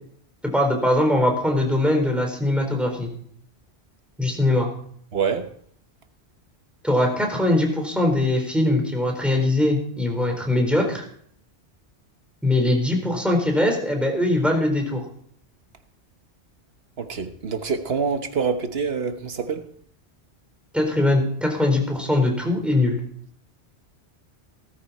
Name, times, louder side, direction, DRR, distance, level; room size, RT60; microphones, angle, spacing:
voice 1, 0.5-3.1 4.2-4.7 6.8-11.0 12.4-15.0 20.7-23.0, left 1 dB, ahead, 4.1 m, -21 dB
voice 2, 5.1-5.5 17.0-19.6, right 5 dB, 60° right, 1.3 m, -26 dB
17.5 x 14.0 x 4.2 m
omnidirectional pair, 1.2 m